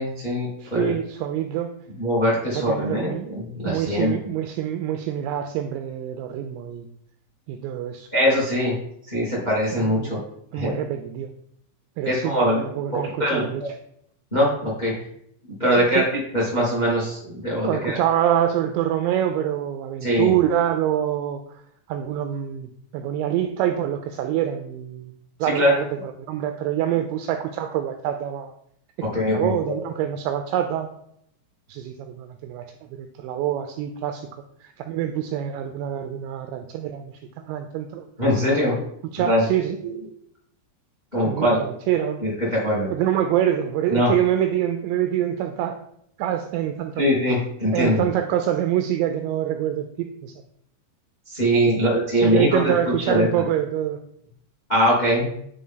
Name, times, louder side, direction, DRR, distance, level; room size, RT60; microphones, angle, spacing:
voice 1, 0.0-0.9 2.0-4.1 8.1-8.7 9.1-10.2 10.5-10.7 12.0-12.6 12.9-13.7 14.3-14.9 15.6-17.9 20.0-20.3 25.5-25.8 29.1-29.8 38.2-38.8 39.2-39.4 41.1-41.6 42.2-42.9 43.9-44.1 47.0-48.0 51.3-52.7 53.0-53.3 54.7-55.2, equal, 15° left, -5 dB, 1.4 m, -22 dB
voice 2, 0.6-1.7 2.5-3.3 3.6-6.9 7.5-8.1 9.8-10.2 10.5-11.3 12.0-13.6 15.8-16.1 17.6-21.4 21.9-25.1 25.4-28.5 29.0-30.9 31.7-32.7 33.0-37.1 37.5-38.1 39.1-39.8 41.2-42.2 42.9-45.8 46.2-47.0 47.7-50.3 51.8-54.0, right 11 dB, 85° right, 6 dB, 2.6 m, -25 dB
9.5 x 3.9 x 3.8 m, 0.71 s
omnidirectional pair, 5.6 m